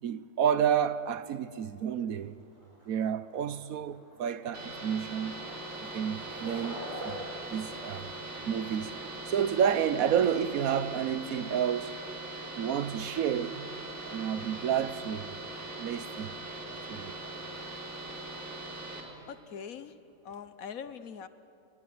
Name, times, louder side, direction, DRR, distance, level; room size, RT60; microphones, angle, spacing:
voice 1, 0.0-2.4 2.9-5.4 5.8-8.1 8.4-8.9 9.3-12.0 12.6-13.7 14.0-15.4 15.8-16.4 16.9-17.2, right 8 dB, 85° right, 1.3 m, -30 dB
Skateboard, 1.0-16.1, equal, 20° right, 4.4 m, -49 dB
sound 1, 4.5-19.0, right 2 dB, 55° right, 4.0 m, -41 dB
voice 2, 19.3-20.0 20.2-21.3, left 7 dB, 80° left, 1.5 m, -42 dB
22.5 x 22.5 x 9.5 m
omnidirectional pair, 1.4 m